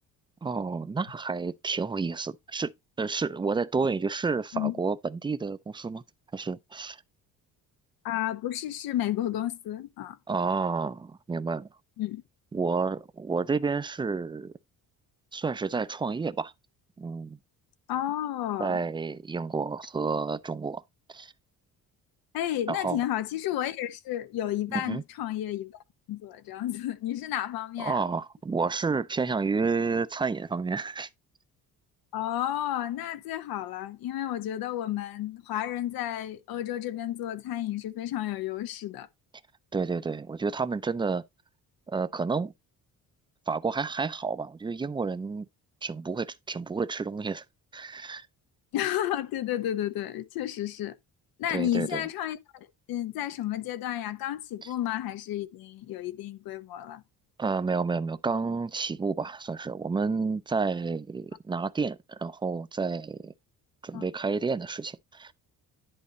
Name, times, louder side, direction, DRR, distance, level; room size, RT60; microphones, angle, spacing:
voice 1, 0.4-2.7 3.0-6.0 6.3-7.0 10.3-11.7 12.5-14.5 15.3-16.5 17.0-17.4 18.6-20.8 21.1-21.3 22.7-23.0 24.7-25.0 27.8-31.1 39.7-41.2 41.9-42.5 43.5-45.5 45.8-47.4 47.7-48.3 51.5-52.0 54.6-54.7 57.4-63.3 63.8-65.3, right 4 dB, 15° right, 0.4 m, -30 dB
voice 2, 8.0-10.2 12.0-12.2 17.9-18.8 22.3-25.7 26.1-28.0 32.1-39.1 48.7-51.0 51.4-57.0 63.9-64.0, left 12 dB, 80° left, 0.9 m, -32 dB
11.0 x 4.2 x 4.0 m
cardioid pair, 150°, 35 cm